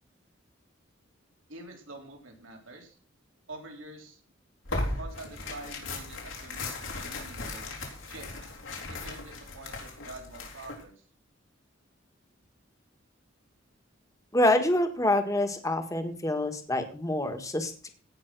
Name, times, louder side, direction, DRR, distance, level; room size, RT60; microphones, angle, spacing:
voice 1, 1.5-3.0 3.5-4.2 4.9-7.7 8.0-8.3 9.0-10.9, right 2 dB, 80° right, 1 dB, 3.7 m, -46 dB
Tearing, 4.6-10.8, left 2 dB, 85° left, 3.9 m, -37 dB
voice 2, 14.3-17.9, left 1 dB, 15° left, 6 dB, 1.6 m, -26 dB
17.0 x 6.0 x 6.1 m, 0.41 s
head